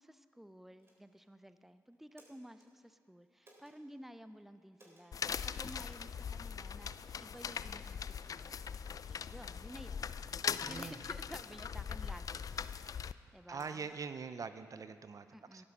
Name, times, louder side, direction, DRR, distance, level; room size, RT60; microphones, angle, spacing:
voice 1, 0.0-10.1 10.4-12.4 13.1-13.9 15.3-15.6, equal, 5° right, 12 dB, 0.6 m, -53 dB
sound 1, 0.8-1.3 1.9-2.7 3.4-3.8 4.7-5.1 5.9-6.1 6.6-6.9 7.4-7.6 8.2-8.3 8.9-9.2 10.0-10.4 11.2-11.8 12.3-12.8 13.5-13.9, right 1 dB, 35° right, 3.6 m, -65 dB
sound 2, 5.1-13.1, left 7 dB, 55° left, 0.4 m, -41 dB
voice 2, 10.6-11.0 13.5-15.3 15.5-15.6, right 5 dB, 50° right, 11 dB, 0.7 m, -43 dB
13.5 x 11.5 x 5.5 m, 2.1 s
supercardioid pair, 45°, 7 cm